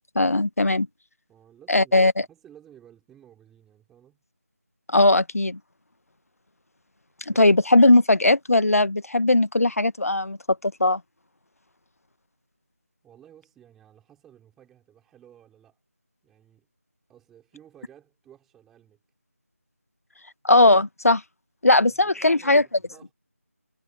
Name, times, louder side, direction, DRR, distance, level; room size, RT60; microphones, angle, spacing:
voice 1, 0.1-0.9 1.7-2.1 4.9-5.6 7.3-10.4 10.6-11.0 20.4-21.2 21.6-22.6, left 2 dB, 70° left, 1.4 m, -18 dB
voice 2, 1.3-4.2 7.3-7.5 13.0-15.8 16.2-16.7 17.1-19.0 21.8-23.1, right 10 dB, 5° right, 6.2 m, -54 dB
figure-of-eight pair, 175°, 8 cm